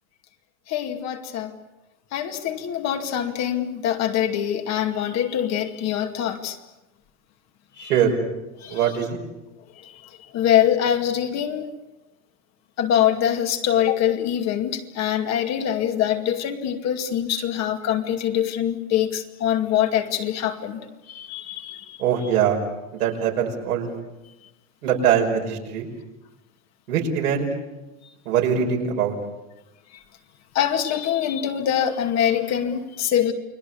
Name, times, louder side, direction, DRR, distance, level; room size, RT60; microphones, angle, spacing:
voice 1, 0.7-1.5 2.1-6.6 7.8-8.0 8.6-8.9 9.8-10.0 10.3-11.7 12.8-20.8 21.1-22.0 30.5-33.3, left 10 dB, 35° left, 5 dB, 2.3 m, -24 dB
voice 2, 7.8-8.2 8.7-9.2 22.0-22.6 23.0-23.9 24.8-25.9 26.9-27.5 28.3-29.1, right 8 dB, 85° right, 1 dB, 5.8 m, -22 dB
30.0 x 21.0 x 7.1 m, 1.0 s
supercardioid pair, 135°, 44 cm